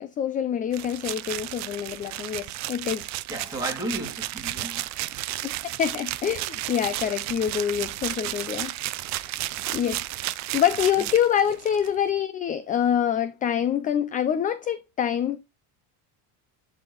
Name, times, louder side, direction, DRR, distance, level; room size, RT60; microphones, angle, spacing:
voice 1, 0.0-3.1 5.4-5.5 5.8-8.7 9.0-9.3 9.7-15.4, left 9 dB, 20° left, 0.4 m, -26 dB
sound 1, 0.7-11.9, right 16 dB, 40° right, 0.5 m, -33 dB
voice 2, 3.3-5.1 9.5-9.7 11.0-11.1, right 1 dB, 5° right, 2.6 m, -34 dB
11.0 x 4.3 x 3.9 m
cardioid pair, 155°, 46 cm